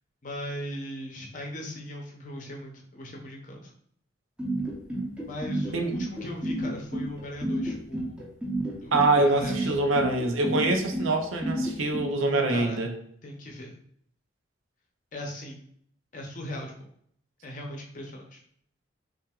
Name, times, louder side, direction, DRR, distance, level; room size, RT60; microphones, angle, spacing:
voice 1, 0.2-3.7 5.3-8.3 8.8-9.7 12.2-12.8 13.2-13.7 15.1-15.6 16.1-16.8 17.4-18.4, left 1 dB, 40° left, 1 dB, 0.7 m, -38 dB
sound 1, 4.4-12.0, right 1 dB, 5° right, 0.8 m, -30 dB
voice 2, 8.9-12.9, right 2 dB, 90° right, 5 dB, 0.6 m, -24 dB
5.6 x 2.5 x 2.3 m, 0.66 s
head